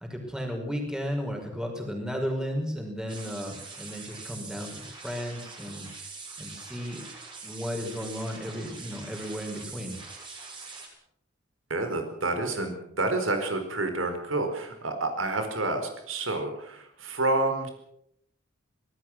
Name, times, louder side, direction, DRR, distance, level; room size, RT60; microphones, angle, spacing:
voice 1, 0.1-5.9 6.4-7.0 7.4-10.0, equal, 5° right, 2 dB, 5.5 m, -34 dB
sound 1, 3.1-10.9, right 4 dB, 25° right, 6.6 m, -43 dB
voice 2, 11.7-17.7, right 2 dB, 80° right, 6 dB, 4.6 m, -29 dB
25.0 x 19.0 x 6.4 m, 0.75 s
head